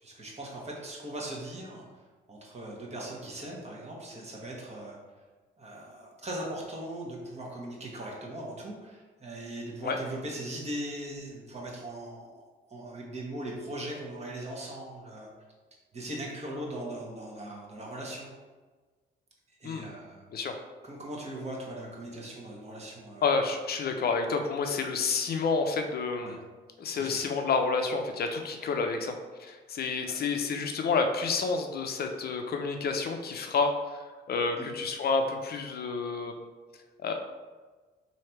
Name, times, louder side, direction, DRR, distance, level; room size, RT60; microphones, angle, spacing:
voice 1, 0.0-1.8 2.3-5.0 5.6-15.3 15.9-18.3 19.6-20.3 20.8-23.2 26.2-26.4 26.9-27.2 30.1-30.2 34.6-34.7, right 1 dB, 35° right, -3 dB, 1.2 m, -39 dB
voice 2, 23.2-26.4 26.8-29.1 29.4-33.7 34.3-36.4 37.0-37.1, left 4 dB, 50° left, 5 dB, 0.6 m, -29 dB
3.2 x 2.8 x 4.4 m, 1.3 s
cardioid pair, 90°, 20 cm